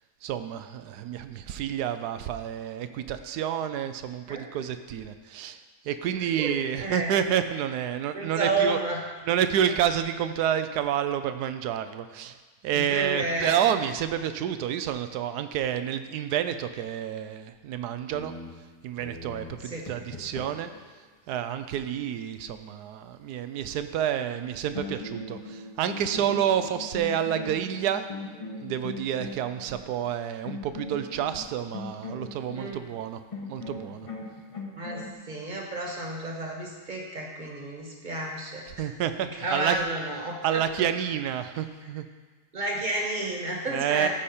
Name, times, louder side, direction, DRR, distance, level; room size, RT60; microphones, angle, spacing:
voice 1, 0.2-5.6 5.8-8.8 9.3-12.4 12.6-18.3 18.8-20.7 21.3-28.1 28.6-33.2 33.5-34.1 38.7-39.8 40.4-42.0 43.7-44.1, right 10 dB, 80° right, 10 dB, 1.1 m, -29 dB
voice 2, 6.2-7.3 8.1-9.0 9.7-9.8 12.7-13.7 19.6-19.9 32.5-32.8 34.7-38.7 39.2-40.9 42.5-44.1, right 2 dB, 30° right, 0 dB, 1.4 m, -31 dB
sound 1, 18.1-20.8 24.3-24.5 24.7-29.9 30.4-32.7 33.3-35.1, left 3 dB, 25° left, 1.0 m, -40 dB
14.0 x 5.0 x 4.2 m, 1.4 s
omnidirectional pair, 1.7 m